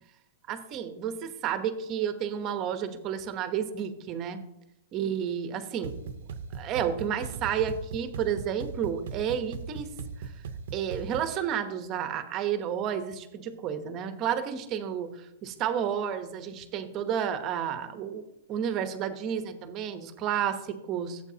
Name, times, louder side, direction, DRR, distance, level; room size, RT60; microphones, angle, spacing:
voice 1, 0.5-4.4 4.9-5.9 6.5-9.9 10.7-15.1 15.4-18.2 18.5-21.2, right 8 dB, 25° right, 9 dB, 0.8 m, -31 dB
sound 1, 5.8-11.4, right 6 dB, 65° right, 0.7 m, -39 dB
15.0 x 7.9 x 2.8 m, 0.90 s
hypercardioid pair, 165°, 0 cm